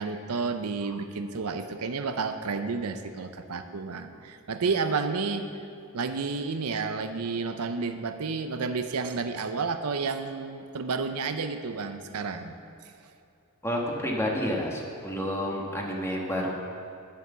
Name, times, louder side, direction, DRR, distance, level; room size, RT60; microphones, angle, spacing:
voice 1, 0.0-5.5 5.9-12.5, right 4 dB, 75° right, 8 dB, 0.6 m, -31 dB
voice 2, 13.6-16.5, equal, 10° left, -1 dB, 1.5 m, -29 dB
10.5 x 7.6 x 6.8 m, 2.6 s
head